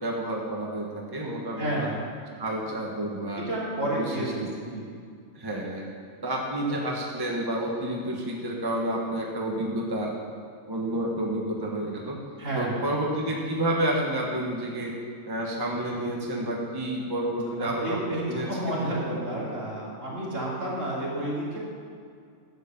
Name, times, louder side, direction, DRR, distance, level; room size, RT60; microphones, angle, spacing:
voice 1, 0.0-1.9 2.4-3.4 4.1-4.7 5.3-5.9 6.2-10.3 10.7-12.2 12.5-14.9 15.3-18.0 18.3-18.9 19.3-19.4, right 1 dB, 15° right, -2 dB, 1.2 m, -30 dB
voice 2, 1.6-2.0 3.4-4.9 12.4-12.9 17.6-21.6, right 1 dB, 55° right, -6 dB, 3.4 m, -31 dB
11.5 x 8.2 x 7.0 m, 2.3 s
omnidirectional pair, 1.5 m